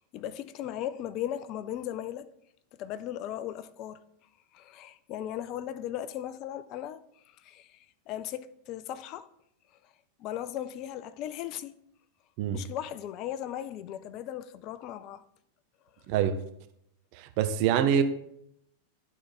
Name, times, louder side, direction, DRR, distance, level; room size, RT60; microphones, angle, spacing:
voice 1, 0.0-2.3 2.7-4.0 4.5-7.0 7.4-9.3 10.2-11.7 12.5-15.2, left 11 dB, 40° left, 0.5 m, -37 dB
voice 2, 16.1-16.4 17.2-18.0, right 9 dB, 45° right, 0.8 m, -25 dB
11.5 x 4.3 x 4.6 m
figure-of-eight pair, 90°, 0 cm